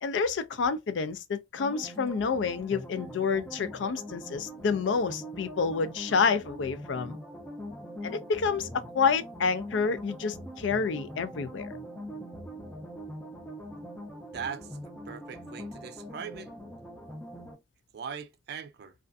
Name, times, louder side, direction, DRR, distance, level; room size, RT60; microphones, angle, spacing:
voice 1, 0.0-7.2 8.0-11.7, left 5 dB, 80° left, 0.4 m, -29 dB
sound 1, 1.6-17.5, equal, 10° left, 0.5 m, -42 dB
voice 2, 14.3-14.8 15.1-16.5 17.9-18.9, right 6 dB, 60° right, 0.4 m, -40 dB
2.4 x 2.4 x 2.2 m
head